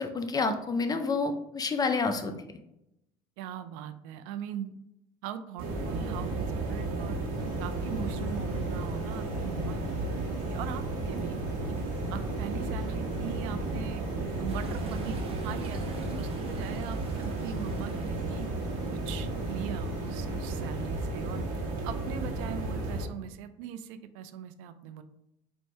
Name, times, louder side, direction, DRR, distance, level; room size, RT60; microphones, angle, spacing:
voice 1, 0.0-2.3, left 4 dB, 25° left, 7 dB, 0.5 m, -29 dB
voice 2, 3.4-4.8 5.2-7.2 7.6-11.7 12.1-14.0 14.4-18.5 18.9-21.4 21.8-25.0, right 9 dB, 85° right, 10 dB, 0.4 m, -40 dB
sound 1, 5.6-23.1, right 2 dB, 65° right, 1.3 m, -33 dB
sound 2, 7.4-22.9, left 3 dB, 50° left, 0.8 m, -51 dB
sound 3, 14.5-19.0, right 3 dB, 35° right, 1.1 m, -50 dB
4.5 x 2.6 x 3.2 m, 0.84 s
supercardioid pair, 105°, 16 cm